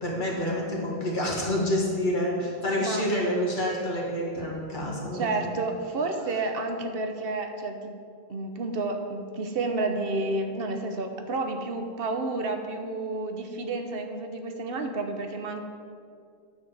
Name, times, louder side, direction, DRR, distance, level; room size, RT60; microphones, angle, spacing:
voice 1, 0.0-5.5, left 1 dB, 50° left, -4 dB, 2.0 m, -28 dB
voice 2, 5.1-7.9 8.3-15.6, right 2 dB, 65° right, 5 dB, 0.9 m, -30 dB
9.7 x 3.9 x 7.2 m, 2.3 s
omnidirectional pair, 1.1 m